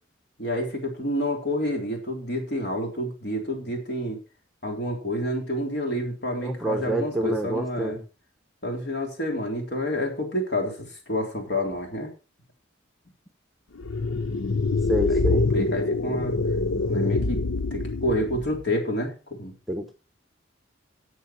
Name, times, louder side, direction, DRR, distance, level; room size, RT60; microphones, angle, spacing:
voice 1, 0.4-4.2 4.6-8.0 8.6-12.1 15.1-16.4 16.9-17.4 17.7-19.1 19.4-19.5, equal, 55° left, 2 dB, 3.6 m, -29 dB
voice 2, 6.4-8.0 14.9-15.5 19.7-19.9, right 1 dB, ahead, 5 dB, 1.1 m, -27 dB
sound 1, 13.8-18.6, left 3 dB, 85° left, 0.8 m, -25 dB
13.0 x 8.3 x 4.4 m, 0.32 s
head